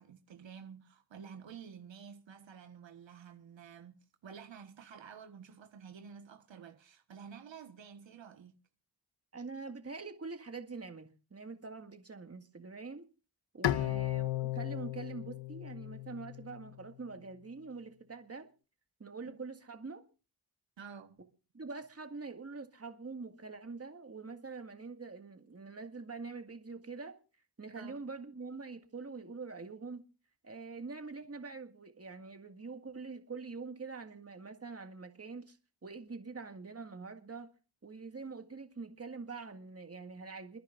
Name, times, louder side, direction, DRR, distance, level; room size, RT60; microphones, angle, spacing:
voice 1, 0.0-8.6 13.8-14.0 19.2-19.4 20.8-21.2 27.7-28.0, right 7 dB, 75° right, 1.5 m, -51 dB
voice 2, 9.3-13.1 13.5-18.5 19.0-20.0 21.5-27.2 27.6-30.0 30.4-35.6 35.8-37.5 37.8-40.6, right 4 dB, 30° right, 2.0 m, -45 dB
Bowed string instrument, 13.6-16.9, left 14 dB, 70° left, 0.7 m, -35 dB
29.5 x 10.0 x 2.6 m
cardioid pair, 50°, 45 cm